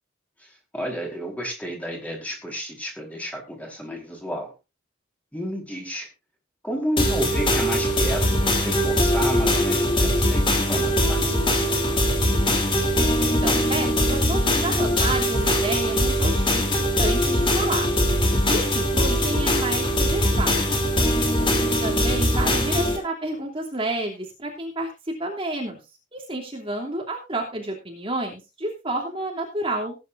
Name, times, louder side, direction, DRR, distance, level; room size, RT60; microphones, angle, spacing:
voice 1, 0.4-4.5 5.3-6.1 6.6-11.8 21.4-21.8, equal, 10° left, 1 dB, 4.5 m, -32 dB
sound 1, 7.0-23.0, equal, 25° left, 3.2 m, -21 dB
voice 2, 13.2-17.9 18.5-20.8 21.8-25.8 26.1-30.0, right 1 dB, 30° right, -1 dB, 2.9 m, -30 dB
18.5 x 10.0 x 2.6 m, 0.26 s
head